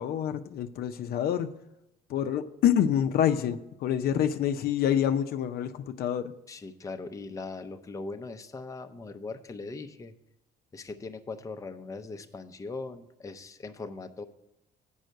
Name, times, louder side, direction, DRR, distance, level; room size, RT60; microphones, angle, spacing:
voice 1, 0.0-1.5 2.1-6.3, left 9 dB, 65° left, 8 dB, 0.6 m, -27 dB
voice 2, 6.5-10.1 10.7-14.2, left 3 dB, 20° left, 7 dB, 0.6 m, -40 dB
7.9 x 5.5 x 6.3 m, 0.90 s
cardioid pair, 110°, 17 cm